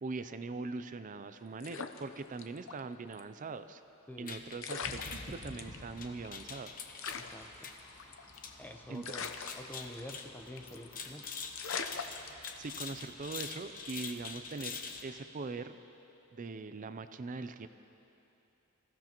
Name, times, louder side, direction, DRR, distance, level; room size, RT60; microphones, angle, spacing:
voice 1, 0.0-3.8 4.2-6.9 8.9-9.0 12.6-15.8 16.3-17.7, right 3 dB, 35° right, 11 dB, 0.4 m, -42 dB
sound 1, 1.6-2.8 3.1-3.2 4.2-4.3 4.6-5.8 6.2-6.3 6.5-6.6 7.0-8.5 9.0-10.3 10.6-10.9 11.2-11.3 11.5-12.9 13.4-13.7, left 6 dB, 65° left, 0.7 m, -41 dB
voice 2, 4.1-4.4 7.2-7.7 8.6-9.3 9.6-11.2, left 1 dB, 10° left, 3 dB, 0.8 m, -47 dB
sound 2, 4.3-15.0, left 5 dB, 40° left, 1.0 m, -45 dB
sound 3, 5.5-15.8, left 2 dB, 85° left, 1.8 m, -62 dB
26.0 x 15.0 x 3.0 m, 2.9 s
head